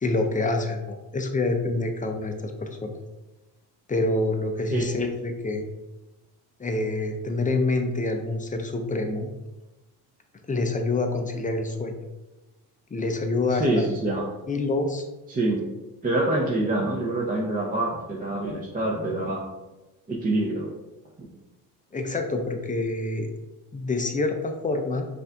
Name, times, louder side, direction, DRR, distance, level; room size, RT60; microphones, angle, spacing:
voice 1, 0.0-2.9 3.9-5.6 6.6-9.3 10.5-12.0 12.9-13.8 14.5-15.1 21.9-23.3 23.7-25.1, left 2 dB, 20° left, 5 dB, 0.5 m, -27 dB
voice 2, 13.5-14.2 15.3-15.6 16.0-19.4 20.1-20.7 21.2-21.3, right 2 dB, 20° right, -3 dB, 0.7 m, -26 dB
5.3 x 2.7 x 3.4 m, 1.1 s
cardioid pair, 90°, 46 cm